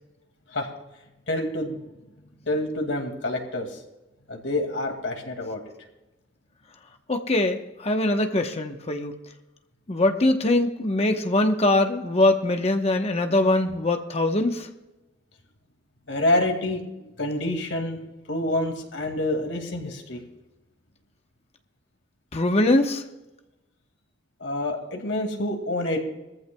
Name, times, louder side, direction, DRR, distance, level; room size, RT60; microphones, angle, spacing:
voice 1, 1.3-1.8 2.2-3.8 4.3-5.6 16.1-16.8 17.2-18.0 18.3-20.2 24.4-26.0, left 1 dB, 80° left, 3 dB, 2.3 m, -27 dB
voice 2, 7.1-9.2 9.9-14.7 22.3-23.0, left 2 dB, 35° left, 5 dB, 1.0 m, -22 dB
21.0 x 14.5 x 2.3 m, 1.0 s
head